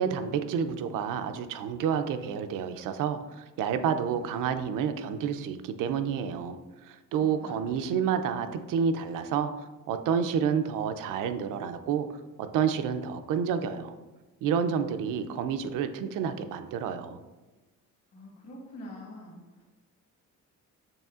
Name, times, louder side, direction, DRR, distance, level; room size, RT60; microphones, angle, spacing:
voice 1, 0.0-6.6 6.8-12.1 12.4-14.0 14.4-17.2, right 7 dB, 85° right, 8 dB, 0.5 m, -29 dB
voice 2, 7.2-7.8 18.1-19.6, left 1 dB, 50° left, -1 dB, 1.2 m, -45 dB
6.9 x 3.1 x 2.4 m, 1.2 s
cardioid pair, 170°, 31 cm